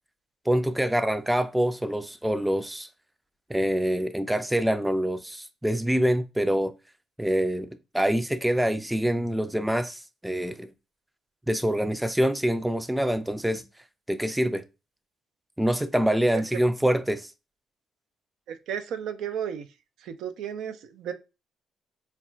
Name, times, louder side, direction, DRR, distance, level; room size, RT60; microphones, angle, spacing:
voice 1, 0.5-2.9 3.5-6.7 7.2-10.7 11.5-13.6 14.1-14.6 15.6-17.3, right 1 dB, 5° right, 0.3 m, -25 dB
voice 2, 18.5-19.7 20.0-21.1, right 8 dB, 85° right, 0.4 m, -33 dB
4.1 x 2.2 x 2.3 m
cardioid pair, 90°, 0 cm